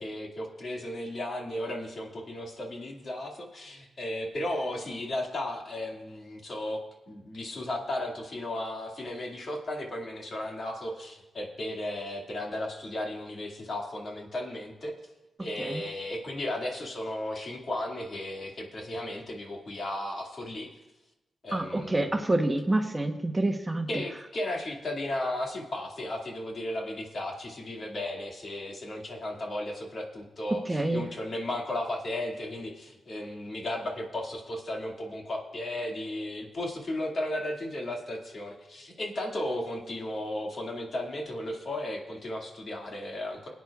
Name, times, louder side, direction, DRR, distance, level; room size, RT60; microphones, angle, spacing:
voice 1, 0.0-14.9 15.4-20.7 21.4-22.2 23.9-43.5, left 1 dB, 55° left, 0 dB, 2.2 m, -35 dB
voice 2, 21.5-24.0 30.7-31.1, right 2 dB, 20° right, 5 dB, 0.9 m, -27 dB
20.0 x 9.3 x 2.4 m, 1.0 s
cardioid pair, 65°, 0 cm